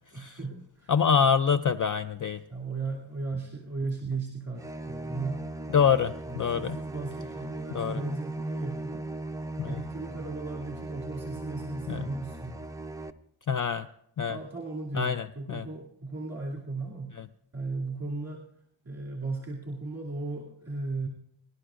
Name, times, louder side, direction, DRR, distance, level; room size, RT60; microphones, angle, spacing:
voice 1, 0.1-0.9 1.2-1.3 2.5-5.5 6.3-9.0 9.6-12.7 14.3-17.2 17.5-18.4 18.8-21.1, right 3 dB, 30° right, -3 dB, 2.5 m, -36 dB
voice 2, 0.9-2.4 5.7-6.8 7.7-8.0 9.6-9.8 11.9-12.1 13.5-13.9 14.2-14.4 14.9-15.7, left 7 dB, 40° left, 11 dB, 0.4 m, -26 dB
sound 1, 4.6-13.1, right 2 dB, 5° right, 0.5 m, -38 dB
24.0 x 11.5 x 2.5 m, 0.74 s
wide cardioid pair, 105°, 49 cm